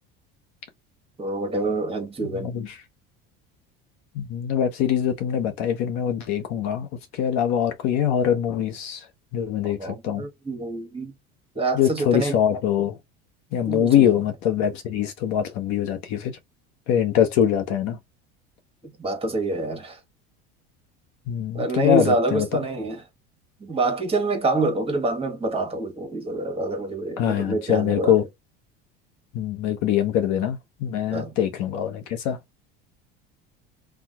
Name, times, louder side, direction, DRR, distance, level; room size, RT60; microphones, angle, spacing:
voice 1, 1.2-2.5 9.6-11.1 11.5-12.4 13.7-14.1 19.0-20.0 21.5-23.0 23.6-28.2 31.1-31.3, right 2 dB, 20° right, 1.3 m, -26 dB
voice 2, 2.2-2.8 4.1-6.9 7.1-9.0 9.3-10.3 11.7-13.0 13.5-16.4 16.9-18.0 21.3-22.5 27.2-28.2 29.3-32.4, left 9 dB, 65° left, 1.0 m, -23 dB
2.8 x 2.5 x 3.7 m
supercardioid pair, 100°, 31 cm